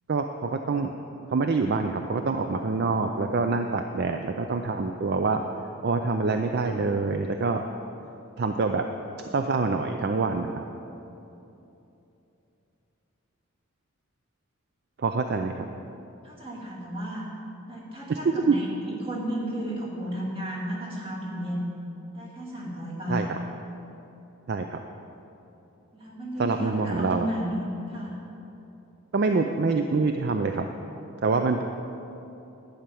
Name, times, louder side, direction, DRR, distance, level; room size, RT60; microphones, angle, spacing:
voice 1, 0.1-0.9 1.3-5.4 5.8-7.6 8.4-8.9 9.3-10.5 15.0-15.7 18.1-18.2 18.5-18.6 23.1-23.3 24.5-24.8 26.4-27.3 29.1-30.7 31.2-31.6, right 4 dB, 45° right, 6 dB, 0.4 m, -25 dB
voice 2, 16.2-17.3 17.7-21.7 22.1-23.3 25.9-28.2, equal, 25° right, -5 dB, 2.2 m, -33 dB
11.0 x 5.8 x 8.4 m, 2.9 s
head